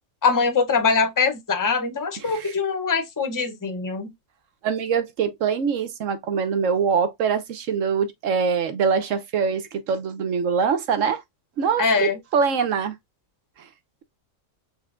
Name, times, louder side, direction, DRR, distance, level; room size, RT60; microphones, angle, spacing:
voice 1, 0.2-4.1 11.8-12.2, left 5 dB, 20° left, 0.7 m, -22 dB
voice 2, 2.2-2.5 4.6-11.2 11.6-12.9, right 6 dB, 70° right, 1.2 m, -24 dB
5.6 x 3.4 x 2.5 m
omnidirectional pair, 1.4 m